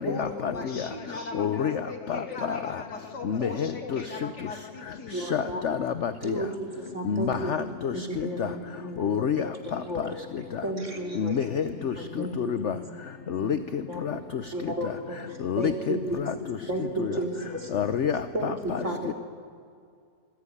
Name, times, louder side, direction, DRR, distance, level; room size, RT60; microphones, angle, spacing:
voice 1, 0.0-5.2, left 3 dB, 75° left, 5 dB, 3.1 m, -39 dB
voice 2, 1.4-1.7 3.3-3.5 5.3-6.1 7.1-7.6 7.8-7.9 9.0-9.4 11.2-11.9 12.4-12.7 13.3-13.5 15.5-15.9 17.7-18.2, left 8 dB, 50° left, 11 dB, 1.0 m, -26 dB
voice 3, 5.1-5.6 6.2-7.6 7.9-10.1 10.6-11.5 11.7-12.9 13.4-13.5 13.9-16.4 16.7-17.7 18.3-19.1, right 1 dB, 45° right, 3 dB, 3.6 m, -34 dB
26.0 x 21.0 x 9.8 m, 2.3 s
omnidirectional pair, 1.8 m